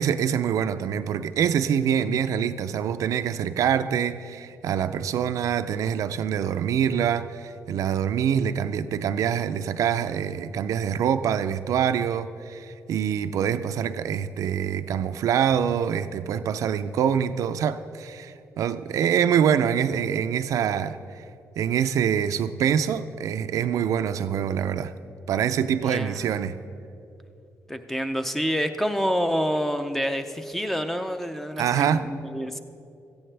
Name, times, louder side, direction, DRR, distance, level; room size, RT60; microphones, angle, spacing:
voice 1, 0.0-21.2 21.6-24.9 25.3-26.6 31.6-32.1, right 8 dB, 70° right, 10 dB, 0.5 m, -25 dB
voice 2, 25.8-26.4 27.7-32.6, equal, 5° left, 8 dB, 0.5 m, -28 dB
17.0 x 14.5 x 3.4 m, 2.6 s
wide cardioid pair, 165°, 6 cm